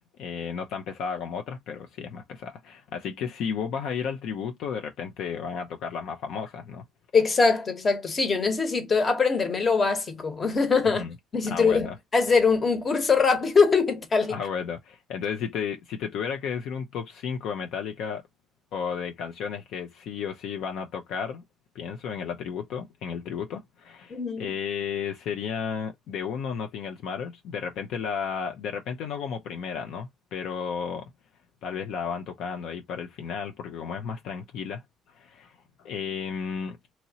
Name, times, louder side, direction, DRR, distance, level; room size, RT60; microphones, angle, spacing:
voice 1, 0.2-6.8 10.9-11.1 11.5-12.0 14.3-18.2 18.7-21.4 21.7-31.1 31.6-34.8 35.2-36.8, left 6 dB, 70° left, 0.5 m, -33 dB
voice 2, 7.1-11.0 11.3-14.4 24.1-24.5, left 4 dB, 30° left, 1.0 m, -23 dB
2.9 x 2.8 x 2.8 m
cardioid pair, 115°, 0 cm